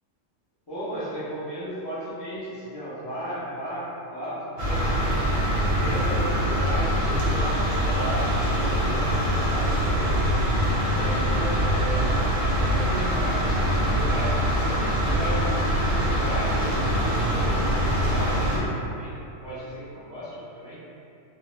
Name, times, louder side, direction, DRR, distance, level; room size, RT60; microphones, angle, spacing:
voice 1, 0.7-5.2 5.6-10.2 10.8-12.2 12.6-20.8, right 1 dB, 40° left, -13 dB, 0.3 m, -35 dB
sound 1, 4.6-18.6, equal, 55° right, 0.7 m, -24 dB
2.4 x 2.0 x 2.9 m, 2.7 s
omnidirectional pair, 1.3 m